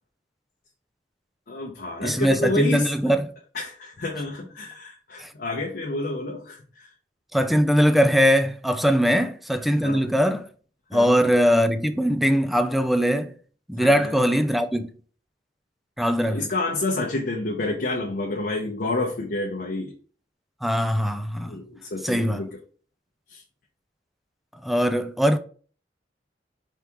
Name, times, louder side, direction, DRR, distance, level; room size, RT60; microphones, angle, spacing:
voice 1, 1.5-2.9 3.5-6.9 9.8-10.0 10.9-11.3 13.8-14.2 16.2-19.9 21.5-22.5 23.3-23.4, left 2 dB, 55° left, 0.7 m, -29 dB
voice 2, 2.0-3.3 5.2-5.3 7.3-10.4 10.9-13.3 13.7-14.9 16.0-16.5 20.6-21.6 22.0-22.4 24.6-25.4, equal, ahead, 0.3 m, -21 dB
4.7 x 3.5 x 2.9 m
head